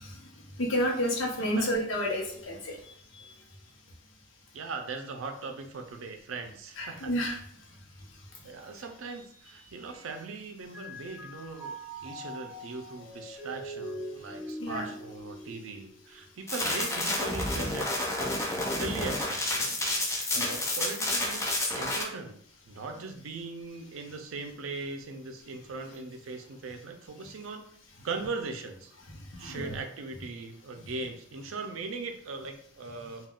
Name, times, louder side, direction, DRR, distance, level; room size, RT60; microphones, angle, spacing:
voice 1, 0.6-2.8 6.8-7.4 14.6-14.9 20.4-20.6 29.3-29.8, equal, 75° left, -1 dB, 0.8 m, -30 dB
voice 2, 1.4-1.7 4.5-7.1 8.4-11.7 12.0-19.8 20.3-22.4 22.7-27.7 28.0-28.9 29.4-33.3, right 3 dB, 85° right, 5 dB, 0.5 m, -39 dB
Mallet percussion, 9.3-10.4 10.7-16.2, right 1 dB, 10° right, 1.2 m, -43 dB
sound 1, 16.5-22.0, left 1 dB, 15° left, 0.4 m, -30 dB
3.5 x 2.3 x 2.3 m, 0.62 s
head